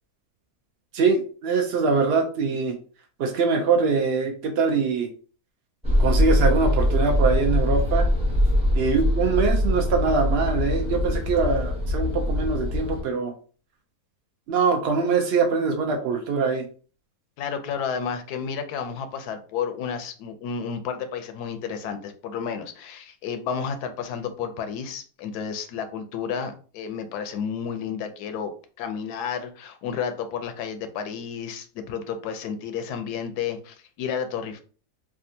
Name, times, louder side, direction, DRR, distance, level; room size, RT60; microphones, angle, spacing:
voice 1, 0.9-2.8 3.2-5.1 6.0-8.1 8.7-13.3 14.5-16.7, right 4 dB, 75° right, 3 dB, 0.5 m, -23 dB
sound 1, 5.8-13.0, left 1 dB, 5° right, 0.7 m, -22 dB
voice 2, 17.4-28.5 28.8-34.6, left 7 dB, 90° left, 8 dB, 1.1 m, -31 dB
3.4 x 2.4 x 2.6 m, 0.39 s
omnidirectional pair, 1.6 m